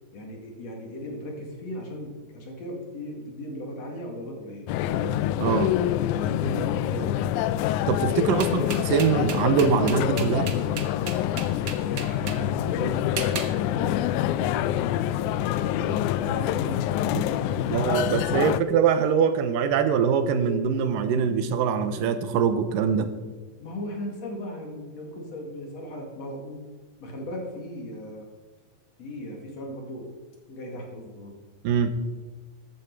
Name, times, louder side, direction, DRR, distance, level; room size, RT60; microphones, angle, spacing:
voice 1, 0.1-5.1 6.1-7.3 8.2-8.7 11.8-14.0 14.3-14.8 15.2-18.4 23.6-26.7 27.0-28.3 29.0-30.1 30.5-31.3, equal, 55° left, 1 dB, 3.1 m, -37 dB
sound 1, 4.7-18.6, left 12 dB, 80° left, 1.7 m, -26 dB
voice 2, 5.4-5.7 7.9-10.5 17.1-17.2 17.7-23.1 31.6-31.9, right 7 dB, 85° right, 10 dB, 2.6 m, -23 dB
sound 2, 8.4-12.4 13.2-13.5, right 6 dB, 55° right, 1.3 m, -34 dB
14.5 x 12.0 x 4.7 m, 1.3 s
omnidirectional pair, 3.8 m